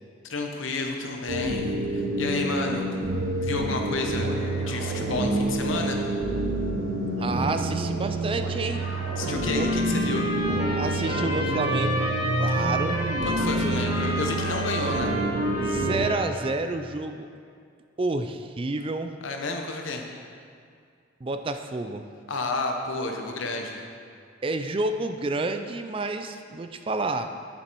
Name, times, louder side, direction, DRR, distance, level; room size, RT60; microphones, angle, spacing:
voice 1, 0.2-3.0 3.4-6.0 9.2-10.3 13.2-15.1 19.2-20.0 22.3-23.8, left 3 dB, 75° left, 3 dB, 1.1 m, -31 dB
sound 1, 1.3-16.1, right 1 dB, 75° right, 0.8 m, -27 dB
voice 2, 7.2-8.9 9.4-9.7 10.5-12.1 12.4-13.2 13.5-14.1 15.6-17.3 18.0-19.2 21.2-22.1 24.4-27.3, right 2 dB, 25° right, 8 dB, 0.4 m, -30 dB
Trumpet, 8.7-16.6, equal, 35° left, 2.4 m, -32 dB
11.0 x 7.1 x 4.5 m, 2.2 s
head